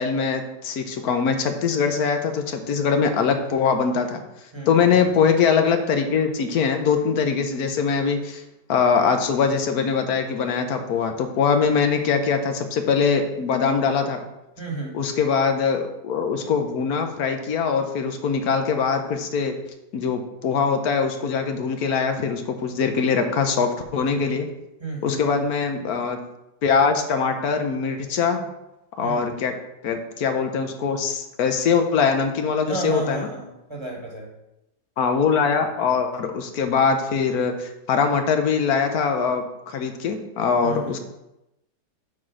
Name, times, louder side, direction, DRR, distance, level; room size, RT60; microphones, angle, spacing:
voice 1, 0.0-4.2 4.7-8.4 8.7-14.2 14.9-19.5 19.9-24.5 25.0-26.2 26.6-28.4 29.0-29.5 29.8-33.3 35.0-41.0, left 6 dB, 65° left, 6 dB, 1.2 m, -22 dB
voice 2, 4.5-4.9 14.6-14.9 24.8-25.4 29.0-29.3 32.7-34.3 40.6-41.0, right 3 dB, 15° right, -2 dB, 1.4 m, -32 dB
7.6 x 4.0 x 6.0 m, 0.90 s
omnidirectional pair, 1.8 m